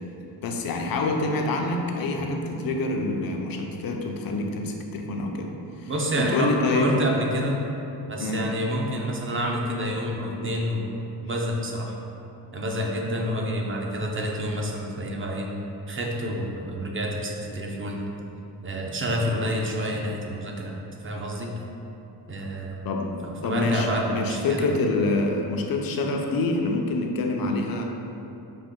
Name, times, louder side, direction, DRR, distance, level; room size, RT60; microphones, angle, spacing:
voice 1, 0.4-5.5 5.8-5.9 6.2-6.9 8.2-8.5 22.8-23.1 23.4-27.8, left 2 dB, 60° left, 2 dB, 0.6 m, -26 dB
sound 1, 2.2-7.8, equal, 15° left, 0.5 m, -43 dB
voice 2, 5.9-7.7 8.1-10.9 11.2-11.9 12.5-15.5 15.9-18.0 18.6-21.5 22.3-22.9 23.2-24.7, equal, 30° right, 0 dB, 0.6 m, -28 dB
5.2 x 2.4 x 3.6 m, 2.9 s
cardioid pair, 90°, 40 cm